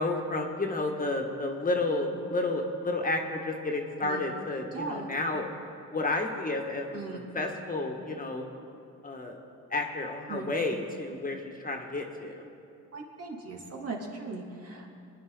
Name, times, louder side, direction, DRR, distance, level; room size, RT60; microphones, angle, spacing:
voice 1, 0.0-5.5 5.9-7.0 7.3-8.5 9.0-9.4 9.7-12.5, left 2 dB, 30° left, 2 dB, 1.7 m, -31 dB
voice 2, 4.7-5.1 6.9-7.3 10.3-10.5 12.9-14.9, right 3 dB, 55° right, -1 dB, 2.6 m, -39 dB
23.0 x 10.0 x 4.0 m, 2.5 s
cardioid pair, 90°, 30 cm